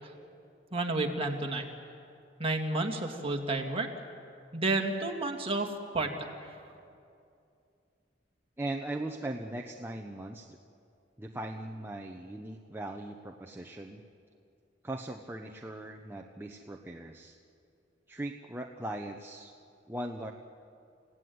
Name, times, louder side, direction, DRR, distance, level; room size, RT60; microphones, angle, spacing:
voice 1, 0.7-1.7 2.4-3.9 4.5-5.7 5.9-6.5, right 2 dB, 30° right, 3 dB, 2.4 m, -31 dB
voice 2, 8.6-10.6 11.2-14.0 14.8-17.4 18.1-19.5 19.9-20.3, right 1 dB, 10° right, 2 dB, 0.9 m, -39 dB
29.5 x 17.0 x 9.5 m, 2.6 s
head